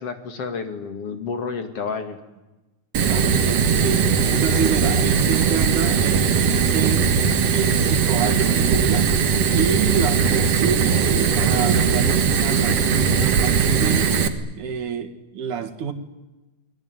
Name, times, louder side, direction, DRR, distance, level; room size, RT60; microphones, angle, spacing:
voice 1, 0.0-2.2, left 5 dB, 50° left, 7 dB, 2.9 m, -30 dB
Fire, 2.9-14.3, right 6 dB, 55° right, 2.5 m, -19 dB
voice 2, 3.0-7.1 7.5-9.1 9.5-12.8 13.2-14.1 14.5-15.9, right 7 dB, 80° right, 5 dB, 3.4 m, -27 dB
29.0 x 20.5 x 9.7 m, 1.1 s
omnidirectional pair, 3.5 m